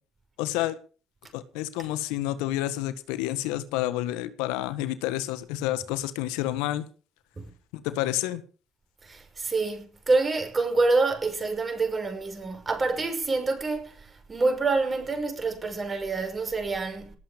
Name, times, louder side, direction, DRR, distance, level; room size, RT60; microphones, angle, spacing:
voice 1, 0.4-0.7 1.3-6.8 7.7-8.4, left 14 dB, 90° left, 1.5 m, -29 dB
voice 2, 9.0-17.1, right 3 dB, 30° right, 5.8 m, -27 dB
19.0 x 7.9 x 7.3 m
supercardioid pair, 80°, 0 cm